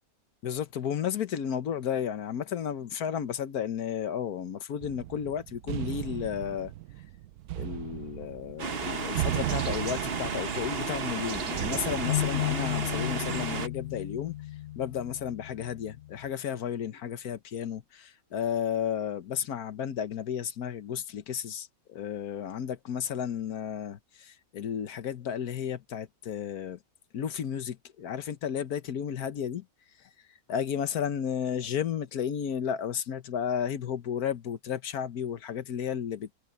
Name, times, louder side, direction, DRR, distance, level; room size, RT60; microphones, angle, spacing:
voice 1, 0.4-6.7 7.6-14.3 14.7-26.8 27.1-29.6 30.5-36.3, left 8 dB, 90° left, 1.5 m, -33 dB
sound 1, 4.8-13.5, right 14 dB, 85° right, 1.1 m, -37 dB
sound 2, 8.6-13.7, right 5 dB, 45° right, 1.3 m, -33 dB
sound 3, 12.0-16.3, left 16 dB, 65° left, 1.0 m, -34 dB
omnidirectional pair, 1.5 m